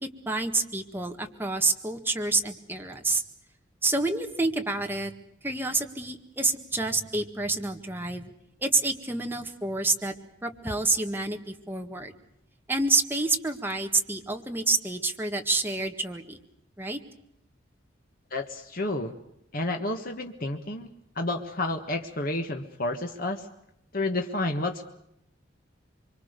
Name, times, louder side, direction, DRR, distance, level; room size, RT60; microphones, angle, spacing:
voice 1, 0.0-3.2 3.8-5.1 5.4-8.3 8.6-10.1 10.4-12.1 12.7-16.4 16.8-17.0, right 3 dB, 10° right, 4 dB, 1.8 m, -28 dB
voice 2, 18.3-19.1 19.5-20.9 21.1-23.5 23.9-24.9, left 2 dB, 45° left, 4 dB, 1.6 m, -30 dB
25.0 x 25.0 x 6.8 m, 0.77 s
head